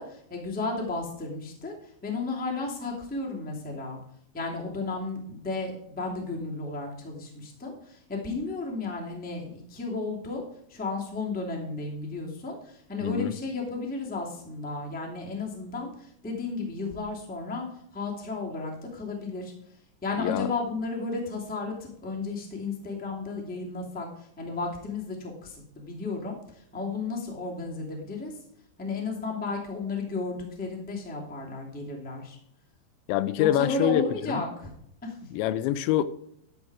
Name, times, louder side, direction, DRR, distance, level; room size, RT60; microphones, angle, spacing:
voice 1, 0.0-4.0 4.3-28.4 28.8-32.4 33.4-34.7 35.0-35.3, left 3 dB, 5° left, -2 dB, 0.9 m, -33 dB
voice 2, 13.0-13.3 20.2-20.5 33.1-34.0 34.3-34.4 35.3-36.0, left 12 dB, 85° left, 13 dB, 2.8 m, -25 dB
12.0 x 6.9 x 4.8 m, 0.73 s
omnidirectional pair, 5.2 m